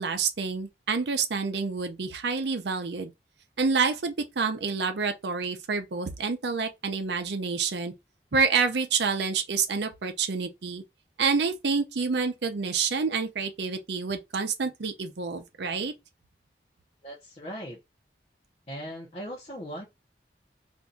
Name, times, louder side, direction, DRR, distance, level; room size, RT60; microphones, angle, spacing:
voice 1, 0.0-3.1 3.6-7.9 8.3-10.8 11.2-15.9, right 5 dB, 80° right, 0.6 m, -28 dB
voice 2, 17.0-17.8 18.7-19.8, equal, 35° left, 0.6 m, -38 dB
2.6 x 2.3 x 3.9 m
head